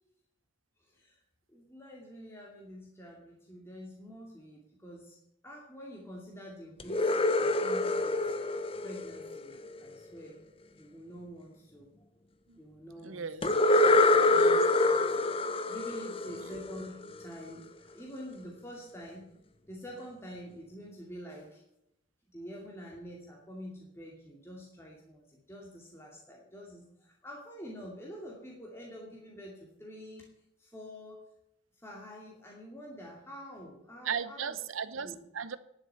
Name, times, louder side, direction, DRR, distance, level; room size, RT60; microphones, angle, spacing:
voice 1, 0.8-1.2 1.5-5.2 5.4-8.3 8.8-10.4 10.7-11.9 12.6-15.3 15.7-19.3 19.7-21.6 22.3-30.3 30.6-31.2 31.8-34.6 34.9-35.2, equal, 10° left, -2 dB, 2.4 m, -47 dB
sound 1, 6.8-9.8 13.4-17.1, left 2 dB, 30° left, 0.8 m, -26 dB
voice 2, 13.0-13.5 14.3-14.7 34.0-35.6, right 6 dB, 85° right, 15 dB, 0.9 m, -37 dB
10.5 x 8.6 x 8.0 m, 0.79 s
head